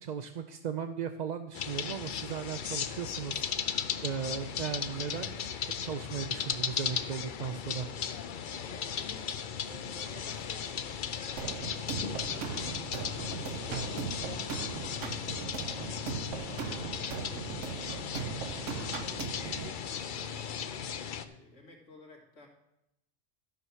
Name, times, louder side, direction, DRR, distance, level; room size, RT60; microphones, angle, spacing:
voice 1, 0.0-5.4 5.8-7.9, right 7 dB, 55° right, 8 dB, 0.5 m, -37 dB
sound 1, 1.5-21.3, left 7 dB, 55° left, 0.6 m, -36 dB
voice 2, 4.2-4.6 8.6-9.3 9.6-10.8 11.1-22.5, left 1 dB, 70° left, 0 dB, 2.5 m, -55 dB
Bark, 10.3-10.6 10.9-11.0 11.3-11.6 12.2-12.5 13.1-13.4 14.1-14.4 16.0-16.1 16.5-16.7 17.0-17.3 17.8-18.1 18.7-19.7 20.0-20.1, equal, 35° right, 4.6 m, -57 dB
sound 2, 11.4-19.7, right 7 dB, 70° right, 1.1 m, -39 dB
12.5 x 5.6 x 6.2 m, 0.85 s
omnidirectional pair, 1.3 m